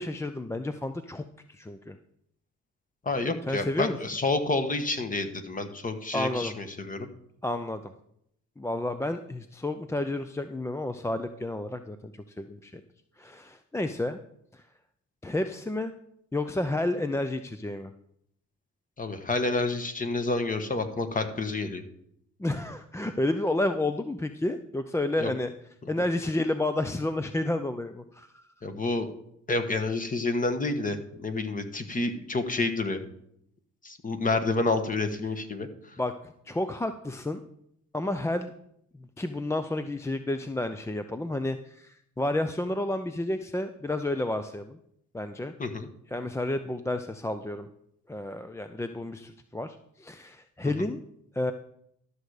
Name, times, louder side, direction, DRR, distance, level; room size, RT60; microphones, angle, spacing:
voice 1, 0.0-2.0 3.5-4.0 6.1-6.5 7.4-7.9 8.6-12.1 12.4-12.8 13.2-14.2 14.5-14.6 15.2-15.9 16.3-17.9 22.4-25.5 25.9-28.4 36.0-36.1 36.5-37.4 37.9-38.5 39.2-44.8 45.1-45.5 46.1-47.7 48.1-51.0 51.3-51.5, left 1 dB, 10° left, 9 dB, 0.5 m, -30 dB
voice 2, 3.0-7.1 19.0-21.8 25.2-25.3 28.6-29.1 29.5-33.0 33.8-35.7 45.6-45.9, left 3 dB, 25° left, 8 dB, 1.2 m, -29 dB
12.5 x 6.6 x 4.8 m, 0.74 s
cardioid pair, 90°, 30 cm